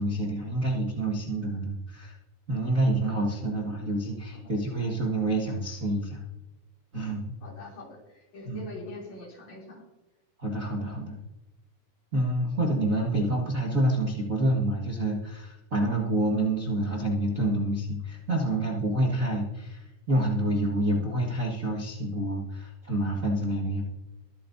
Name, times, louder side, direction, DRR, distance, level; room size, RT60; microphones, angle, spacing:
voice 1, 0.0-2.2 2.5-6.2 6.9-7.3 8.4-8.6 10.4-11.2 12.1-23.8, right 1 dB, 35° right, -4 dB, 1.5 m, -28 dB
voice 2, 3.0-3.5 4.3-4.6 7.4-9.8, left 2 dB, 55° left, -2 dB, 4.5 m, -44 dB
23.0 x 8.5 x 2.7 m, 1.0 s
omnidirectional pair, 3.9 m